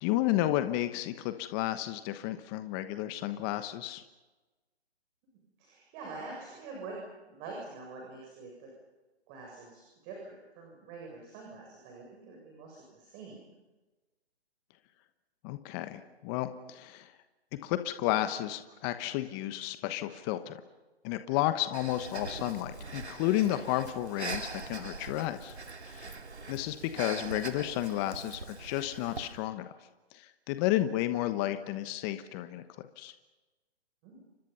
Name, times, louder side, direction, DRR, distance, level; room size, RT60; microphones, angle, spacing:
voice 1, 0.0-4.0 15.4-17.1 17.6-20.6 21.0-25.5 25.9-26.1 26.5-29.7 30.1-32.6 33.0-33.1, left 14 dB, 20° left, 10 dB, 1.1 m, -32 dB
voice 2, 5.6-7.0 7.3-8.7 9.3-13.5 34.0-34.2, right 3 dB, 25° right, -1 dB, 7.7 m, -45 dB
Breathing, 21.7-29.4, right 3 dB, 90° right, 2.6 m, -42 dB
29.5 x 25.5 x 5.7 m, 1.2 s
figure-of-eight pair, 140°, 33 cm